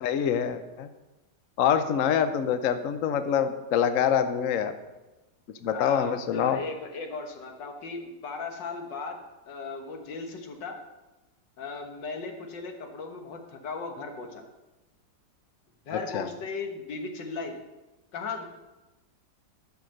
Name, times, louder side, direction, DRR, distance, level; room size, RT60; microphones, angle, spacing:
voice 1, 0.0-0.9 1.6-4.7 5.6-6.6 16.1-16.3, left 8 dB, 60° left, 10 dB, 0.9 m, -25 dB
voice 2, 5.7-9.2 9.5-10.8 11.6-14.4 15.9-17.6 18.1-18.4, left 4 dB, 75° left, 4 dB, 2.0 m, -37 dB
13.0 x 5.8 x 6.4 m, 1.1 s
omnidirectional pair, 1.9 m